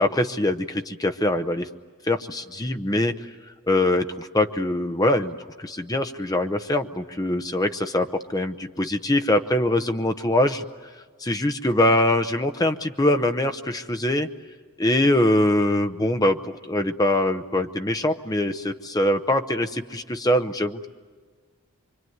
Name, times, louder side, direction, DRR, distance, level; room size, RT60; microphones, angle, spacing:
voice 1, 0.0-1.7 2.0-3.3 3.7-10.6 11.2-14.3 14.8-20.9, left 1 dB, 15° left, 7 dB, 0.8 m, -23 dB
25.5 x 24.5 x 9.4 m, 1.5 s
head